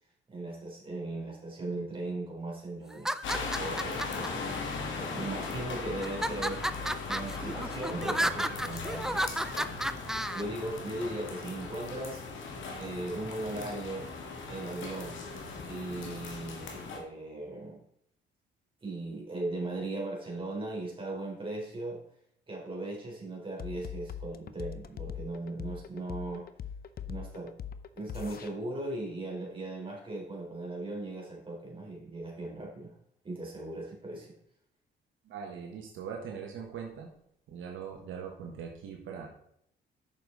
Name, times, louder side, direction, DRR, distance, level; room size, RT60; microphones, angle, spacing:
voice 1, 0.3-4.8 5.1-6.6 7.1-9.8 10.3-12.2 12.8-14.1 14.5-15.2 15.6-17.8 18.8-22.0 22.5-26.4 27.1-27.5 28.0-32.9 33.2-34.3, right 2 dB, 25° right, -2 dB, 4.1 m, -38 dB
sound 1, 2.9-4.3 5.0-5.5 6.0-10.4, right 1 dB, 5° right, 0.4 m, -32 dB
sound 2, 3.2-17.0, left 4 dB, 75° left, 2.0 m, -38 dB
sound 3, 23.6-28.5, left 8 dB, 50° left, 0.7 m, -41 dB
voice 2, 35.2-37.1 37.5-39.3, right 7 dB, 80° right, 1 dB, 1.5 m, -41 dB
9.0 x 6.6 x 4.0 m, 0.71 s
cardioid pair, 90°, 20 cm